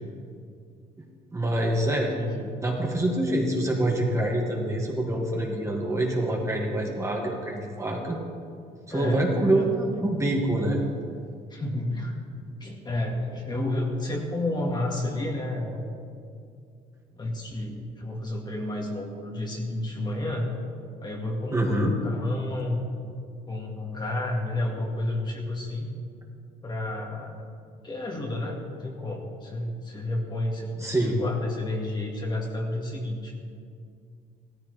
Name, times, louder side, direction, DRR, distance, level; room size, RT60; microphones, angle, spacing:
voice 1, 1.3-2.1 2.4-8.2 8.9-10.8 21.5-21.9 30.8-31.2, right 1 dB, 15° right, -1 dB, 2.1 m, -25 dB
voice 2, 1.9-2.5 8.9-9.2 9.5-9.7 11.5-12.2 12.6-15.9 17.2-20.5 21.0-21.6 22.0-22.8 23.5-25.9 26.6-27.5 27.8-30.7 31.0-33.3, left 1 dB, 25° left, 0 dB, 2.0 m, -31 dB
16.0 x 14.0 x 3.4 m, 2.3 s
cardioid pair, 110°, 17 cm